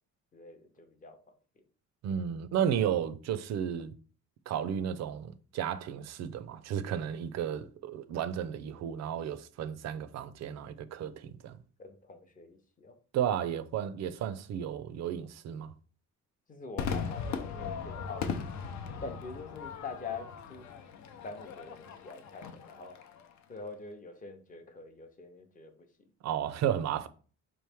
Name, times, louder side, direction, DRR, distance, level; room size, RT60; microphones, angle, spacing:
voice 1, 0.3-1.2 1.6-1.7 11.5-13.0 16.5-18.5 19.0-20.7 21.2-23.0 23.5-25.9, left 4 dB, 25° left, 0.6 m, -45 dB
voice 2, 2.0-3.9 4.5-11.6 13.1-15.7 26.2-27.1, right 9 dB, 60° right, 0.4 m, -33 dB
Crowd / Fireworks, 16.8-23.3, left 6 dB, 65° left, 0.6 m, -38 dB
5.0 x 3.1 x 3.4 m
cardioid pair, 160°, 30 cm